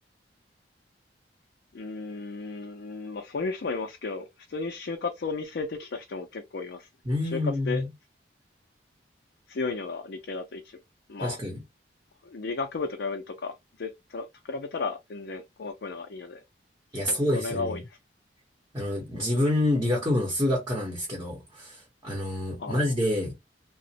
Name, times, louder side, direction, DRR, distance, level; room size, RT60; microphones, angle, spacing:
voice 1, 1.7-6.9 7.2-7.4 7.7-7.8 9.5-10.8 11.1-11.4 12.2-16.4 17.0-17.8 22.6-22.9, left 4 dB, 65° left, 0.4 m, -34 dB
voice 2, 7.1-7.8 11.2-11.6 16.9-17.8 18.7-23.4, left 1 dB, 20° right, 0.8 m, -27 dB
2.9 x 2.0 x 2.8 m
head